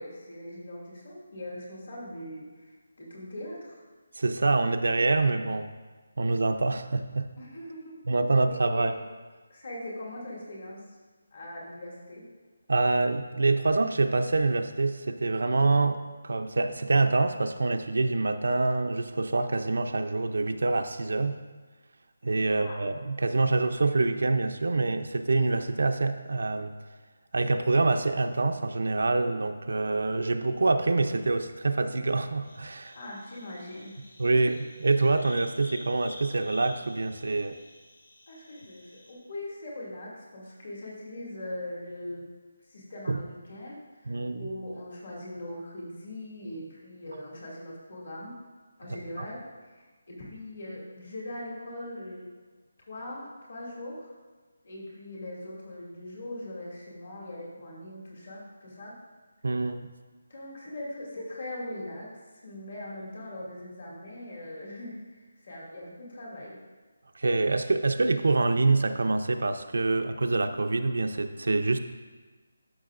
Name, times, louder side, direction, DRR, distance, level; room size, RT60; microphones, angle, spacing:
voice 1, 0.0-3.8 7.4-8.0 8.7-8.9 9.5-10.8 11.3-12.2 22.5-22.8 32.9-33.9 34.3-34.5 38.3-42.3 42.7-48.3 48.8-52.3 52.8-54.1 54.6-58.9 60.3-62.1 62.4-66.6, left 1 dB, 45° left, -4 dB, 2.4 m, -41 dB
voice 2, 4.2-5.7 6.2-7.3 8.1-8.9 12.7-21.4 22.2-26.7 27.3-33.0 34.2-37.6 43.1-43.2 44.1-44.5 49.2-49.3 59.4-59.9 67.1-71.8, right 3 dB, 70° right, 8 dB, 0.5 m, -26 dB
sound 1, 32.4-39.1, left 1 dB, 75° left, 2.2 m, -49 dB
12.0 x 6.2 x 2.5 m, 1.3 s
hypercardioid pair, 175°, 0 cm